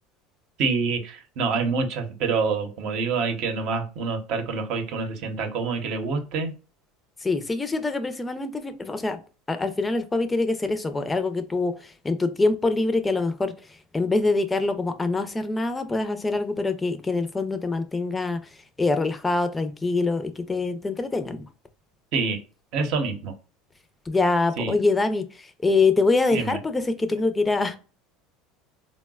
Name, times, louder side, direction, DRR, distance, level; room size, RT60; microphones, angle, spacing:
voice 1, 0.6-6.5 22.1-22.4 22.7-23.3 24.6-24.7 26.3-26.5, right 4 dB, 60° right, 0.8 m, -26 dB
voice 2, 7.2-9.2 9.5-18.4 18.8-21.5 24.1-27.8, left 3 dB, 15° left, 0.5 m, -24 dB
3.9 x 2.1 x 2.3 m
supercardioid pair, 115°, 0 cm